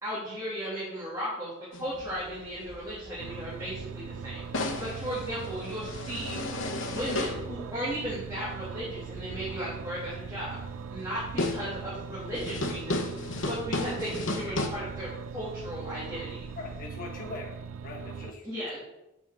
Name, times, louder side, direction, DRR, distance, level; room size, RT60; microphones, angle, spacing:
voice 1, 0.0-6.4 6.8-10.6 10.9-13.0 13.5-16.3 18.4-18.8, equal, 15° right, -10 dB, 2.4 m, -36 dB
sound 1, 1.7-2.4 4.5-7.5 11.0-11.1 11.4-11.8 12.3-14.7, left 2 dB, 65° left, 1.0 m, -33 dB
sound 2, 1.9-16.9, right 1 dB, 45° right, 1.1 m, -50 dB
sound 3, 3.2-18.3, right 6 dB, 75° right, 0.3 m, -41 dB
voice 2, 16.6-18.9, left 3 dB, 40° left, -2 dB, 1.6 m, -42 dB
6.2 x 4.8 x 6.2 m, 0.93 s
head